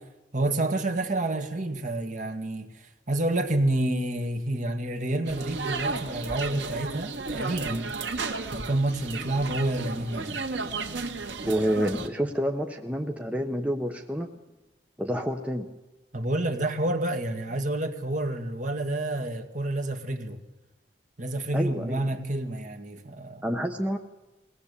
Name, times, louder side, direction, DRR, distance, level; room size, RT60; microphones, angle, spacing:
voice 1, 0.3-2.7 3.1-7.9 8.5-10.4 16.1-20.4 21.2-23.4, right 1 dB, 45° right, 2.1 m, -29 dB
sound 1, 5.3-12.1, right 3 dB, 75° right, 1.9 m, -34 dB
voice 2, 11.4-14.3 15.0-15.7 21.5-22.1 23.4-24.0, equal, 10° right, 1.0 m, -28 dB
22.0 x 17.5 x 8.4 m
head